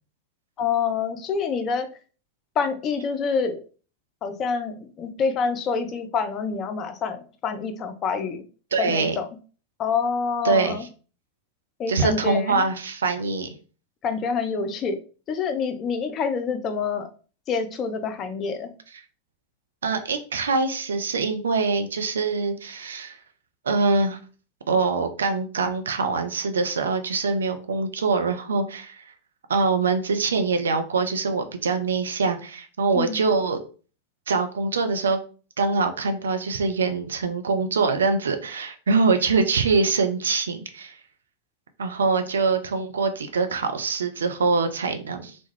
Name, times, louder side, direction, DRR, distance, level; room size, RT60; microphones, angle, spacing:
voice 1, 0.6-1.9 2.6-3.6 4.2-8.4 8.8-9.3 9.8-10.8 11.8-12.7 14.0-15.0 15.3-17.1 17.5-18.7 32.9-33.2, left 5 dB, 30° left, 8 dB, 0.4 m, -27 dB
voice 2, 8.7-9.1 10.4-10.8 11.9-13.5 19.8-23.2 23.7-24.2 24.7-29.0 29.5-33.6 34.3-35.2 35.6-41.0 41.8-45.4, right 4 dB, 70° right, 6 dB, 0.4 m, -24 dB
2.2 x 2.1 x 3.1 m, 0.38 s
figure-of-eight pair, 90°, 0 cm